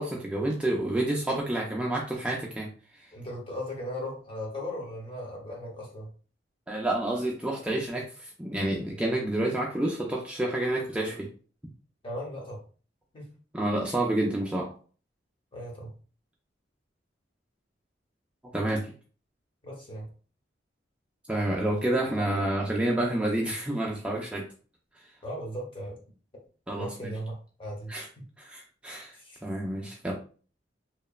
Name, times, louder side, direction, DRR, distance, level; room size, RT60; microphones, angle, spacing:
voice 1, 0.0-2.7 6.7-11.3 13.5-14.7 18.5-18.9 21.3-24.4 26.7-27.1 27.9-28.1 28.4-29.2 29.4-30.1, right 1 dB, 5° right, -2 dB, 0.3 m, -29 dB
voice 2, 3.1-6.1 12.0-12.6 13.1-13.3 15.5-15.9 19.6-20.0 25.2-26.0 26.8-27.9 29.1-29.4, equal, 30° left, -1 dB, 0.8 m, -37 dB
2.9 x 2.1 x 2.3 m, 0.39 s
head